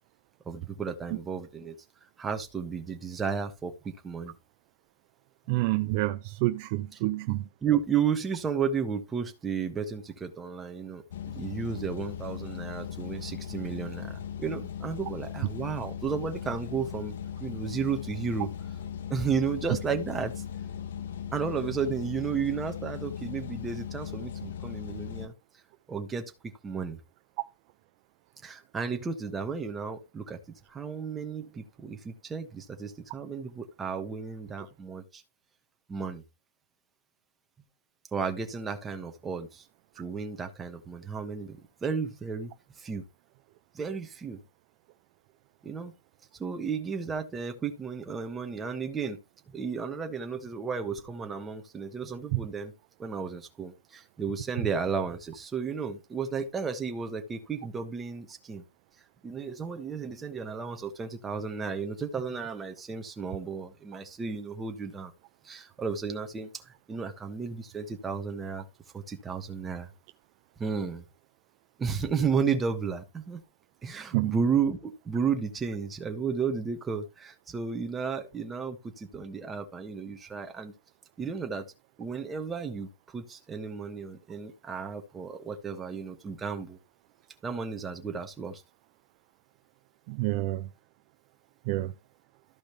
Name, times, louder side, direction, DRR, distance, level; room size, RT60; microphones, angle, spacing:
voice 1, 0.4-1.7 2.2-4.3 6.9-7.0 7.6-17.1 17.4-18.5 19.1-20.3 21.3-25.3 25.9-26.3 26.6-27.0 28.4-30.4 30.7-35.2 35.9-36.2 38.1-39.6 40.0-42.5 42.8-43.0 43.7-44.4 45.6-45.9 46.4-49.2 49.5-52.7 53.0-58.6 59.2-65.1 65.4-68.6 68.9-69.9 70.6-71.0 71.8-73.4 73.8-80.7 81.2-81.7 82.0-86.8 87.4-88.6, right 6 dB, 10° right, 1.4 m, -33 dB
voice 2, 5.5-7.4 52.3-52.4 74.1-74.4 90.1-90.7 91.7-91.9, right 19 dB, 40° right, 0.5 m, -28 dB
sound 1, 11.1-25.3, left 8 dB, 70° left, 1.0 m, -38 dB
14.0 x 5.0 x 3.3 m
hypercardioid pair, 160°, 0 cm